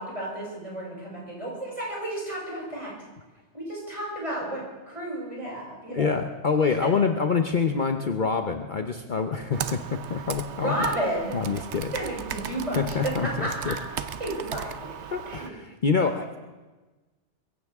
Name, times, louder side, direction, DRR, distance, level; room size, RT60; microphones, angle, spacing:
voice 1, 0.0-2.9 3.5-6.2 6.8-6.9 10.5-11.6 11.9-12.9 13.4-14.9 15.3-15.5, right 1 dB, 30° right, -5 dB, 7.3 m, -32 dB
voice 2, 5.9-10.7 11.3-11.9 12.8-13.7 15.1-16.4, left 5 dB, 45° left, 5 dB, 1.0 m, -26 dB
Computer keyboard, 9.5-15.5, right 8 dB, 75° right, 1.0 m, -36 dB
22.5 x 16.0 x 3.6 m, 1.2 s
omnidirectional pair, 1.2 m